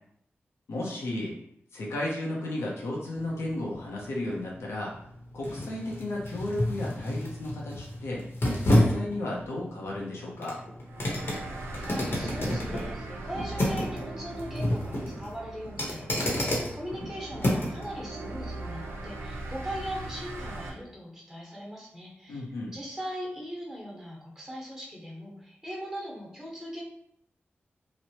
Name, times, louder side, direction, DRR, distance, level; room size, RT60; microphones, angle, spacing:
voice 1, 0.7-1.3 1.7-4.9 5.3-8.2 8.6-10.6 22.3-22.7, left 1 dB, 85° left, -3 dB, 0.6 m, -34 dB
sound 1, 3.2-17.9 18.3-18.4, left 1 dB, 60° left, 0.9 m, -30 dB
sound 2, 10.8-20.7, right 2 dB, 80° right, 0.5 m, -40 dB
voice 2, 11.7-22.4 22.7-26.8, equal, 10° right, -4 dB, 1.2 m, -39 dB
3.0 x 2.0 x 2.8 m, 0.70 s
cardioid pair, 55°, 4 cm